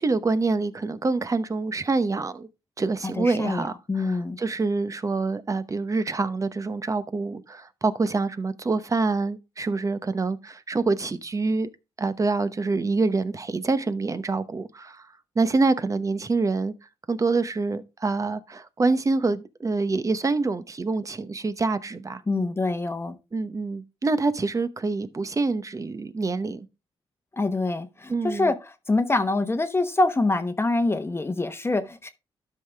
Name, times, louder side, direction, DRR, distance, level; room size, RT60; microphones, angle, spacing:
voice 1, 0.0-2.5 2.8-11.7 12.0-15.1 15.4-16.7 17.1-22.2 23.3-26.7 28.1-28.5, right 3 dB, 30° right, 0.9 m, -26 dB
voice 2, 3.2-4.4 22.3-23.1 27.4-28.5 28.9-32.1, left 2 dB, 25° left, 1.0 m, -25 dB
12.0 x 5.7 x 3.4 m
cardioid pair, 75°, 10 cm